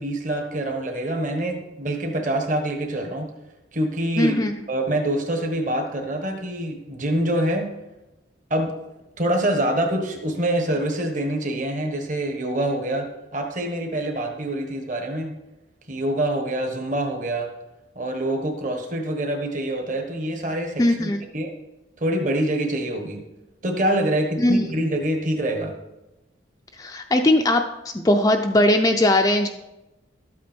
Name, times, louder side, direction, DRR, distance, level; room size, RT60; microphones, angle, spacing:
voice 1, 0.0-3.3 3.7-7.7 8.5-8.7 9.2-13.1 13.3-15.3 15.9-17.5 17.9-21.5 22.0-23.2 23.6-25.7, right 1 dB, 40° right, 3 dB, 1.4 m, -25 dB
voice 2, 4.2-4.5 20.8-21.2 24.4-24.6 26.8-27.7 28.0-29.5, left 1 dB, 15° left, 4 dB, 0.5 m, -19 dB
12.5 x 8.4 x 4.5 m, 0.99 s
head